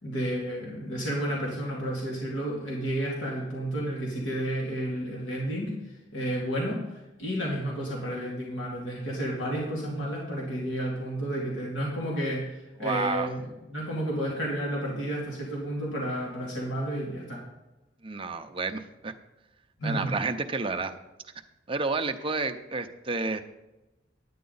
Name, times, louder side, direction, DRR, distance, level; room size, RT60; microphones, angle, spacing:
voice 1, 0.0-17.4 19.8-20.1, right 1 dB, 80° left, -4 dB, 2.5 m, -31 dB
voice 2, 12.8-13.3 18.0-19.1 19.8-20.9 21.7-23.4, right 3 dB, 30° right, 6 dB, 0.6 m, -30 dB
9.4 x 9.4 x 4.0 m, 1.0 s
head